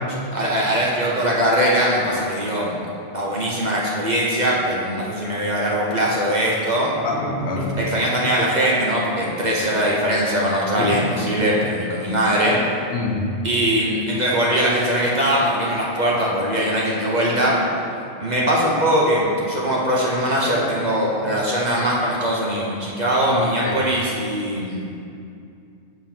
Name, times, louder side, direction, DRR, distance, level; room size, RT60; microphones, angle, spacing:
voice 1, 0.1-2.8 3.1-6.9 7.8-12.6 13.4-17.6 18.2-24.8, equal, 40° right, -4 dB, 0.9 m, -21 dB
voice 2, 7.0-7.8 10.8-11.5 12.9-13.2 23.3-23.7, left 3 dB, 65° left, 1 dB, 1.0 m, -26 dB
7.0 x 3.1 x 5.8 m, 2.4 s
omnidirectional pair, 1.2 m